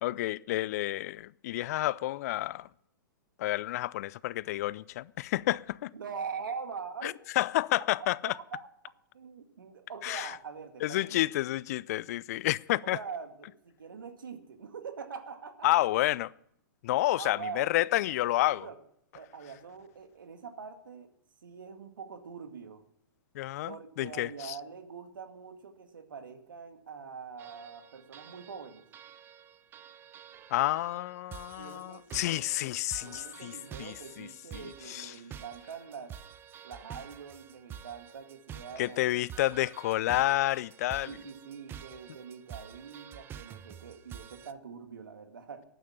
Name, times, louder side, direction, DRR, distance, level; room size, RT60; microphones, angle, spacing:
voice 1, 0.0-2.7 3.4-5.9 7.0-8.3 10.0-10.3 10.8-13.0 15.6-16.3 16.8-18.7 23.3-24.6 30.5-33.5 33.8-34.3 34.5-35.1 38.8-41.1, left 16 dB, 50° left, 0.4 m, -30 dB
voice 2, 5.9-7.1 8.0-8.7 9.1-11.3 12.8-15.7 17.2-17.7 18.5-18.8 19.1-21.1 21.4-22.8 23.7-28.9 31.6-32.8 33.0-36.1 36.6-39.0 41.1-45.7, right 6 dB, 75° right, 1.9 m, -43 dB
sound 1, 27.4-44.5, right 9 dB, 20° right, 0.6 m, -48 dB
12.5 x 9.3 x 8.6 m
hypercardioid pair, 120°, 11 cm